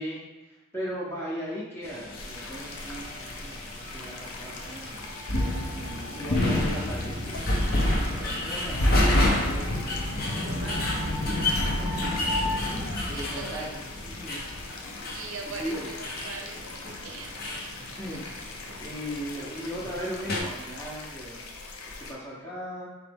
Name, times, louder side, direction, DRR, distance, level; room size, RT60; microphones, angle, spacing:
voice 1, 0.0-5.0 5.7-9.8 11.2-11.5 11.9-12.2 12.6-14.4 15.6-15.9 17.8-18.3 18.8-21.4 22.0-22.9, equal, 10° left, -6 dB, 0.7 m, -38 dB
sound 1, 1.8-20.4, left 1 dB, 45° left, 0.7 m, -29 dB
sound 2, 2.2-22.1, left 3 dB, 90° left, 0.5 m, -43 dB
voice 2, 10.2-11.0 11.3-11.7 13.1-13.8 15.1-17.3 17.8-17.9 18.1-18.4 18.7-18.8, right 3 dB, 65° right, 2 dB, 0.6 m, -42 dB
4.0 x 3.0 x 3.4 m, 1.1 s
head